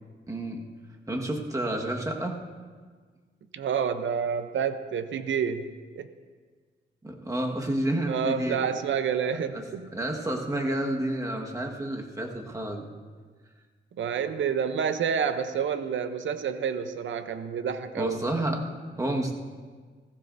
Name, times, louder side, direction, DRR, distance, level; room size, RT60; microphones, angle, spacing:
voice 1, 0.3-0.6 1.1-2.4 7.0-8.6 9.5-9.6 9.9-12.9 18.0-18.7 19.0-19.3, right 1 dB, 15° right, 1 dB, 1.5 m, -30 dB
voice 2, 3.5-5.7 6.0-6.1 8.1-9.9 14.0-18.2, right 7 dB, 75° right, 10 dB, 0.7 m, -28 dB
17.0 x 15.0 x 2.6 m, 1.5 s
cardioid pair, 95°, 20 cm